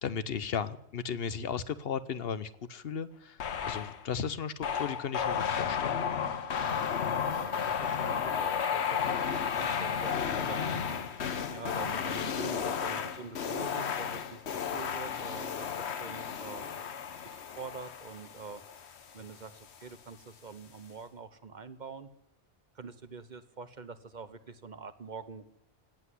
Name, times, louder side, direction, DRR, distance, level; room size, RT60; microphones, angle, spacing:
voice 1, 0.0-3.4 3.7-5.9, left 6 dB, 65° left, 15 dB, 1.0 m, -35 dB
sound 1, 3.4-4.0 4.6-19.3, left 7 dB, 90° left, 1.2 m, -33 dB
voice 2, 7.3-16.9 17.2-18.8 19.1-22.1 22.7-25.5, right 4 dB, 45° right, 12 dB, 1.0 m, -45 dB
18.0 x 8.1 x 9.7 m, 0.78 s
omnidirectional pair, 1.1 m